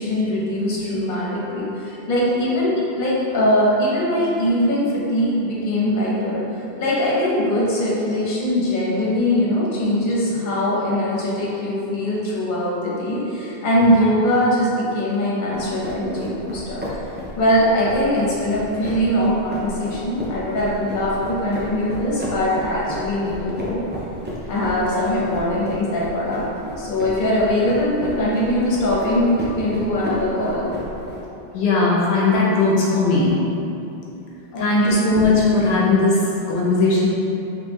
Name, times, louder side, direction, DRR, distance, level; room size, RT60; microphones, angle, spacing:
voice 1, 0.0-6.4 6.8-16.8 17.3-23.8 24.5-26.4 26.8-30.6 34.5-35.1, left 1 dB, 55° left, -7 dB, 1.0 m, -21 dB
sound 1, 15.5-31.2, equal, 15° right, 0.4 m, -33 dB
voice 2, 31.5-33.4 34.6-37.1, left 3 dB, 85° left, -5 dB, 0.9 m, -18 dB
3.6 x 3.3 x 3.0 m, 2.9 s
omnidirectional pair, 1.0 m